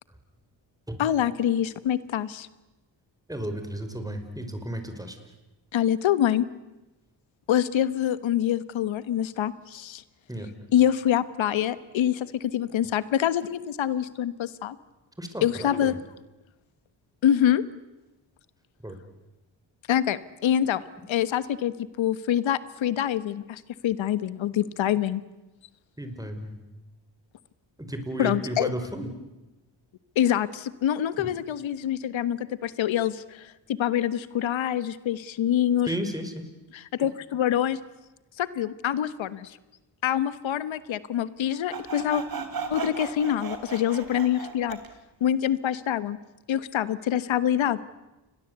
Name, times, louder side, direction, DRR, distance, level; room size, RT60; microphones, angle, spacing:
voice 1, 1.0-2.5 5.7-6.5 7.5-10.0 10.7-14.8 15.4-16.0 17.2-17.6 19.9-20.8 21.1-25.2 28.2-28.7 30.1-33.5 33.8-35.9 36.7-37.8 38.4-39.6 40.0-42.2 42.7-44.8 45.2-46.2 46.5-47.8, left 10 dB, 85° left, 15 dB, 1.3 m, -25 dB
voice 2, 3.3-5.2 10.3-10.5 15.2-15.9 18.8-19.0 26.0-26.6 27.8-29.1 31.2-31.3 35.9-36.3, right 1 dB, 10° right, 7 dB, 5.4 m, -33 dB
Sawing, 41.7-44.9, right 5 dB, 50° right, 3.7 m, -36 dB
29.0 x 21.5 x 8.2 m, 1.0 s
cardioid pair, 70°, 45 cm